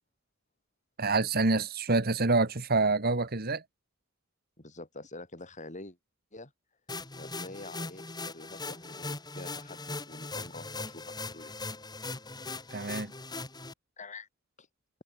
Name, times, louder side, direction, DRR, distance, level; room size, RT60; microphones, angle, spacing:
voice 1, 1.0-3.6 12.7-13.1, right 3 dB, 50° right, 2.0 m, -27 dB
voice 2, 4.6-6.0 6.3-6.5 7.2-11.5 14.0-14.3 14.6-14.7, left 2 dB, 35° left, 7.1 m, -46 dB
sound 1, 6.9-13.7, left 3 dB, 20° left, 4.1 m, -40 dB
head